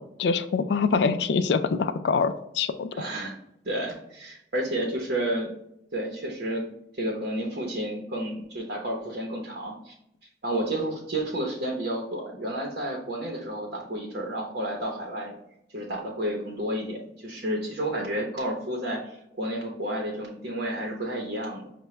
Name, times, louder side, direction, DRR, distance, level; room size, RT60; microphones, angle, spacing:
voice 1, 0.0-2.9, left 5 dB, 65° left, 10 dB, 0.3 m, -25 dB
voice 2, 2.9-3.4 3.6-5.5 5.9-6.6 6.9-9.9 10.4-15.3 15.7-17.0 17.2-21.7, right 1 dB, 60° right, -1 dB, 0.8 m, -31 dB
5.7 x 2.2 x 3.1 m, 0.77 s
head